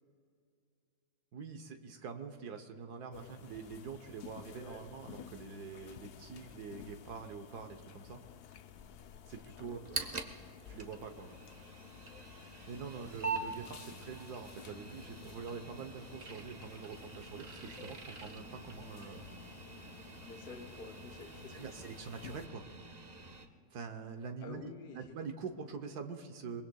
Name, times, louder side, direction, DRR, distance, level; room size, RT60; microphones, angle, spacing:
voice 1, 1.3-8.2 9.3-9.8 10.7-11.4 12.7-19.3 21.5-22.7 23.7-26.6, right 5 dB, 70° right, 6 dB, 1.4 m, -45 dB
sound 1, 3.1-22.5, left 9 dB, 85° left, 0.5 m, -54 dB
voice 2, 4.5-4.8 9.6-10.0 20.2-21.7 24.4-25.1, left 3 dB, 40° left, 2 dB, 1.0 m, -50 dB
sound 2, 9.7-23.5, right 4 dB, 30° right, 0.8 m, -45 dB
23.0 x 22.0 x 2.3 m, 2.3 s
omnidirectional pair, 1.7 m